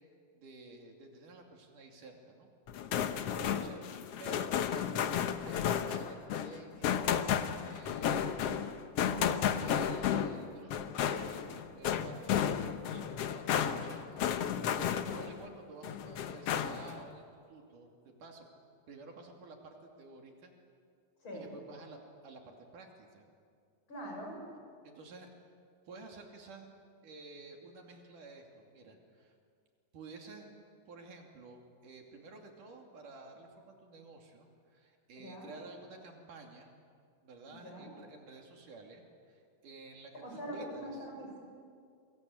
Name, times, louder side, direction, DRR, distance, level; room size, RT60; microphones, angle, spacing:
voice 1, 0.3-2.5 3.4-3.8 4.2-8.4 9.0-12.3 12.8-14.3 14.7-18.5 18.9-20.5 21.3-23.3 24.8-25.3 25.9-26.7 27.0-29.3 29.9-30.5 30.9-36.7 37.2-41.1, right 3 dB, 70° right, 2 dB, 4.2 m, -52 dB
sound 1, 2.7-15.4 15.8-17.0, left 8 dB, 65° left, 1.6 m, -33 dB
voice 2, 3.3-3.6 21.2-21.5 23.9-24.4 35.2-35.5 37.6-37.9 40.2-41.4, equal, 35° left, 0 dB, 7.5 m, -43 dB
Bass guitar, 9.1-15.3, left 3 dB, ahead, 3.9 m, -51 dB
28.0 x 24.0 x 8.6 m, 2.2 s
omnidirectional pair, 3.8 m